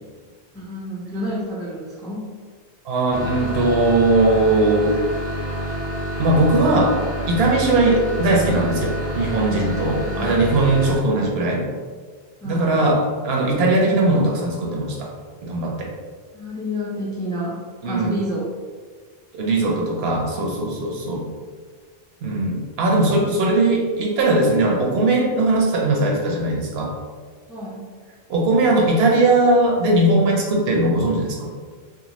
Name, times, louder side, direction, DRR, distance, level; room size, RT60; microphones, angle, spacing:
voice 1, 0.5-2.2 9.9-10.4 12.4-13.0 16.3-18.5 22.8-23.3 27.5-27.9, equal, 5° left, -5 dB, 0.3 m, -30 dB
voice 2, 2.8-5.0 6.2-7.0 7.3-11.6 12.4-15.1 15.4-15.9 17.8-18.1 19.3-21.2 22.2-26.9 28.3-31.5, right 2 dB, 75° right, -1 dB, 0.8 m, -19 dB
sound 1, 3.1-11.0, equal, 65° left, 0.7 m, -28 dB
2.6 x 2.2 x 2.9 m, 1.5 s
omnidirectional pair, 1.0 m